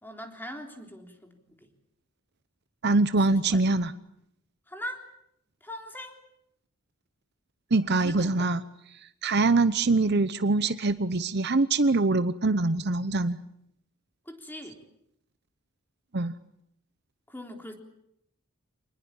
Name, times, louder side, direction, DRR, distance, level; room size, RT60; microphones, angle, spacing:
voice 1, 0.0-1.7 3.2-3.6 4.7-5.1 5.6-6.2 8.0-8.3 14.3-14.8 17.3-17.7, equal, 10° left, 3 dB, 3.6 m, -41 dB
voice 2, 2.8-3.9 7.7-8.6 9.2-13.4 16.1-16.3, right 3 dB, 50° right, 13 dB, 0.9 m, -24 dB
26.5 x 20.0 x 8.9 m, 0.77 s
head